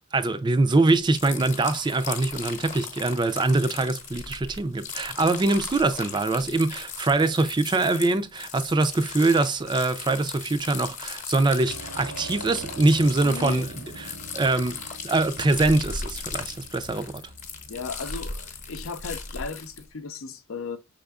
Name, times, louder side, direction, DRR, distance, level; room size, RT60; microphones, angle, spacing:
voice 1, 0.1-13.7 14.0-17.2, right 2 dB, 20° right, 0.4 m, -23 dB
sound 1, 0.9-19.9, left 5 dB, 40° left, 0.8 m, -38 dB
sound 2, 11.6-20.0, right 3 dB, 75° right, 0.9 m, -44 dB
voice 2, 13.2-13.7 17.7-20.8, left 4 dB, 80° left, 0.6 m, -35 dB
5.6 x 3.6 x 2.3 m
head